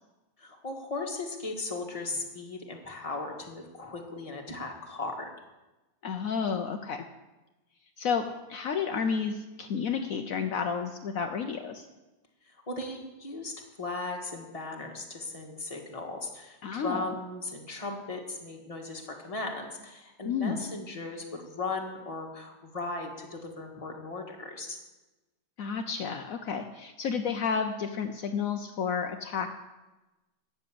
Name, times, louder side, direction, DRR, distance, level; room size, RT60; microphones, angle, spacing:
voice 1, 0.4-5.3 12.5-24.8, left 3 dB, 25° left, 1 dB, 1.8 m, -37 dB
voice 2, 6.0-7.0 8.0-11.8 16.6-17.1 20.2-20.6 25.6-29.5, left 6 dB, 65° left, 5 dB, 1.2 m, -31 dB
13.0 x 7.0 x 8.6 m, 1.1 s
omnidirectional pair, 1.6 m